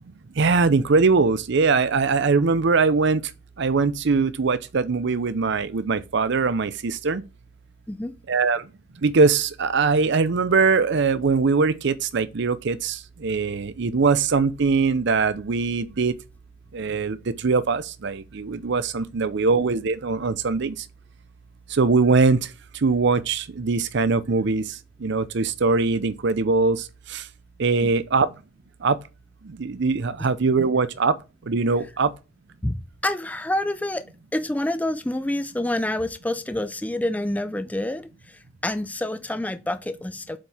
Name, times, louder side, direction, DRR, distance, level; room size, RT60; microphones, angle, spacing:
voice 1, 0.4-3.2 3.6-7.2 8.3-8.6 9.0-13.0 13.2-16.1 16.7-20.7 21.7-22.4 22.8-24.6 25.0-26.8 27.1-27.2 27.6-28.3 28.8-29.0 29.6-31.2 31.5-32.1, right 4 dB, 60° right, 0.6 m, -21 dB
voice 2, 32.6-40.4, left 1 dB, 5° left, 0.4 m, -28 dB
7.6 x 4.5 x 3.5 m
head